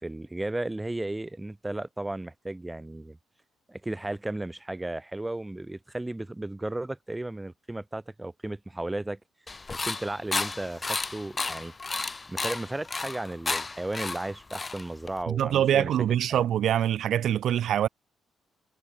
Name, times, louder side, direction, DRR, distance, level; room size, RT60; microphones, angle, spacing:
voice 1, 0.0-3.2 3.7-9.2 9.7-11.7 12.3-15.9 16.3-16.4, right 2 dB, 10° right, 4.1 m, -34 dB
sound 1, 9.5-15.2, left 3 dB, 25° left, 3.3 m, -33 dB
voice 2, 15.3-17.9, right 10 dB, 70° right, 2.5 m, -24 dB
cardioid pair, 90°, 0 cm